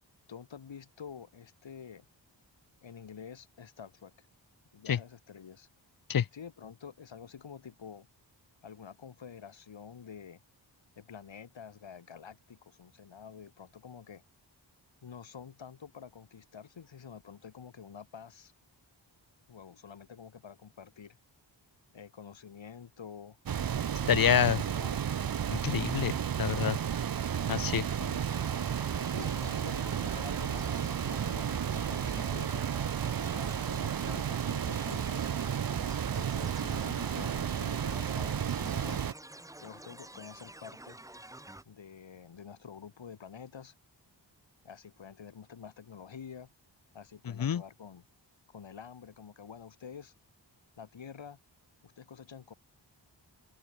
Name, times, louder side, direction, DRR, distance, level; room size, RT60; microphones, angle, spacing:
voice 1, 0.3-2.1 2.8-4.3 4.7-5.7 6.3-8.1 8.6-10.4 11.0-14.2 15.0-18.5 19.5-21.2 21.9-23.4 24.0-25.0 27.9-28.2 29.0-32.7 33.2-35.3 36.2-39.1 39.6-41.0 41.6-43.7 44.6-46.5 46.9-48.0 48.5-50.1 50.8-51.4 51.8-52.5, left 7 dB, 85° left, 2.8 m, -48 dB
sound 1, 23.5-39.1, right 8 dB, 50° right, 0.7 m, -32 dB
voice 2, 24.1-24.6 25.5-26.8 27.5-27.9 47.4-47.6, left 8 dB, 50° left, 0.7 m, -27 dB
sound 2, 28.3-41.6, right 1 dB, 10° right, 0.7 m, -49 dB
open air
wide cardioid pair, 120°, 44 cm